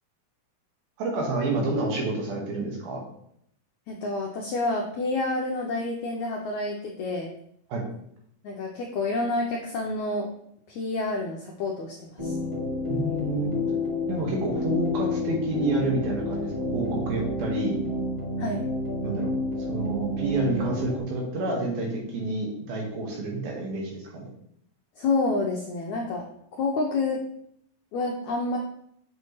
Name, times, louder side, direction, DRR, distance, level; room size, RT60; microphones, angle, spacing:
voice 1, 1.0-3.0 7.7-7.8 12.9-13.5 14.1-17.8 19.0-19.3 19.7-24.3, right 2 dB, 80° right, -1 dB, 3.4 m, -29 dB
voice 2, 3.9-7.3 8.4-10.3 10.7-12.4 18.4-18.6 25.0-26.2 26.6-27.2 27.9-28.6, left 3 dB, 80° left, 0 dB, 1.6 m, -28 dB
sound 1, 12.2-21.0, left 1 dB, 15° right, 0.8 m, -30 dB
7.1 x 6.3 x 3.0 m, 0.71 s
omnidirectional pair, 4.2 m